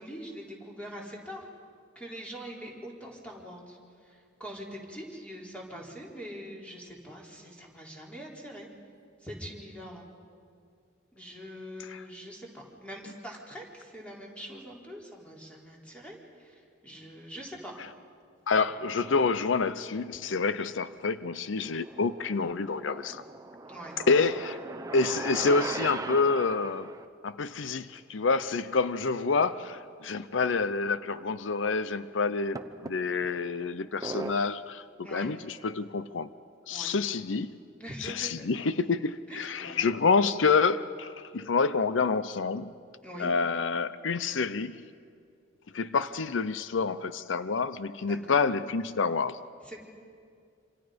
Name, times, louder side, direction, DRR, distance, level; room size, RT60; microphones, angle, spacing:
voice 1, 0.0-1.4 2.0-3.8 4.0-8.7 9.2-10.1 11.1-17.7 23.7-24.3 35.0-35.3 36.7-36.9 37.8-38.5 39.3-39.8 43.0-43.3 48.1-48.4 49.6-49.8, equal, 5° left, 4.0 m, -43 dB
voice 2, 18.5-23.2 24.1-24.6 24.9-26.9 27.2-36.3 36.7-37.6 38.0-42.7 43.2-44.8 45.7-49.4, left 4 dB, 90° left, 0.6 m, -28 dB
sound 1, 18.7-19.3 20.1-20.9 21.4-27.1 29.5-29.6 29.9-30.0 30.8-30.9 32.6-33.4 34.0-34.3, right 3 dB, 20° right, 0.8 m, -39 dB
27.0 x 27.0 x 5.2 m
head